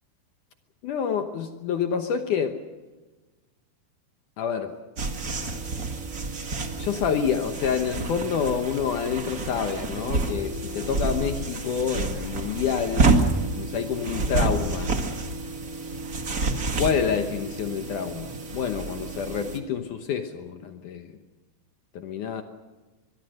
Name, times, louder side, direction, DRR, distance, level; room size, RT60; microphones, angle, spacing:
voice 1, 0.8-2.6 4.4-4.7 6.8-13.1 13.6-14.9 16.8-21.1 22.0-22.4, left 7 dB, 75° left, 6 dB, 1.8 m, -28 dB
sound 1, 5.0-19.6, right 3 dB, 80° right, 0.8 m, -28 dB
23.5 x 22.5 x 6.4 m, 1.2 s
omnidirectional pair, 5.2 m